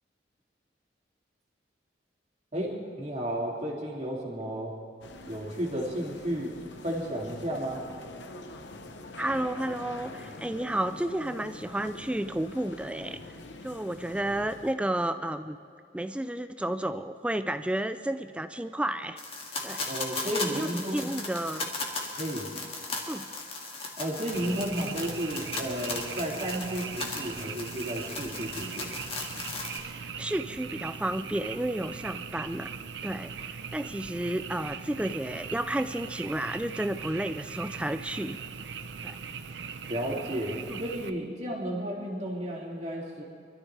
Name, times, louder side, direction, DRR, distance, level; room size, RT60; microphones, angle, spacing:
voice 1, 2.5-4.7 5.3-6.5 6.8-7.8 19.8-21.1 22.2-22.5 24.0-28.9 39.9-43.2, equal, 35° right, -3 dB, 2.6 m, -33 dB
sound 1, 5.0-14.7, left 2 dB, 80° left, 0.9 m, -45 dB
voice 2, 9.2-13.2 13.6-15.6 15.9-19.2 19.6-19.9 20.5-21.7 23.1-23.3 30.0-32.7 33.0-38.4 39.0-39.2 40.7-40.8, right 1 dB, 5° right, 11 dB, 0.3 m, -32 dB
sound 2, 19.2-29.8, left 3 dB, 30° left, 1.8 m, -37 dB
Frog, 24.3-41.1, right 6 dB, 70° right, 0.6 m, -40 dB
25.0 x 13.0 x 3.3 m, 2.4 s
head